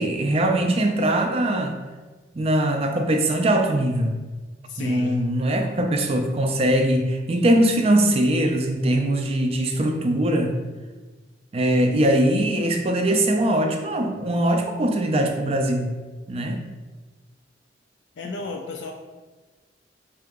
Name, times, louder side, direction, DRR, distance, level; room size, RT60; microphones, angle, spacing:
voice 1, 0.0-1.8 2.4-4.2 4.8-10.6 11.5-15.9 16.3-16.7, right 1 dB, 35° right, 4 dB, 0.4 m, -21 dB
voice 2, 4.7-5.3 18.2-18.9, left 4 dB, 70° left, 2 dB, 0.3 m, -33 dB
3.7 x 2.8 x 3.5 m, 1.3 s
head